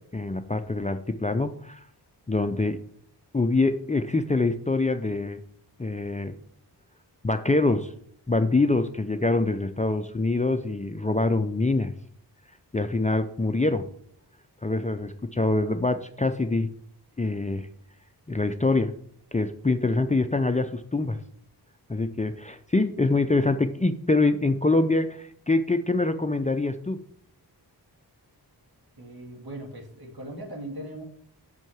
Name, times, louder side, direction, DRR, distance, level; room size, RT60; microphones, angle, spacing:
voice 1, 0.1-1.8 2.3-2.8 3.3-5.4 5.8-6.3 7.2-7.9 8.3-11.9 12.7-13.8 14.6-16.7 17.2-17.7 18.3-18.9 19.3-21.2 21.9-27.0, left 2 dB, 20° left, 9 dB, 0.5 m, -25 dB
voice 2, 28.9-31.0, right 1 dB, 60° right, 0 dB, 2.4 m, -39 dB
6.3 x 5.6 x 7.1 m, 0.64 s
wide cardioid pair, 75°, 41 cm